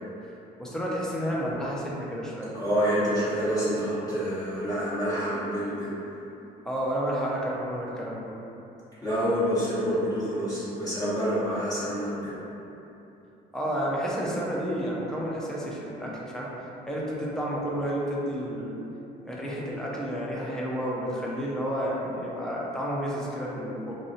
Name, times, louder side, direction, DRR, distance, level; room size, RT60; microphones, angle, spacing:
voice 1, 0.6-2.5 6.7-8.3 13.5-16.5 16.9-18.8 19.2-24.0, equal, 5° left, -5 dB, 0.5 m, -31 dB
voice 2, 2.5-5.9 9.0-12.4, equal, 25° left, -14 dB, 1.0 m, -27 dB
2.4 x 2.1 x 3.8 m, 2.9 s
cardioid pair, 110°, 17 cm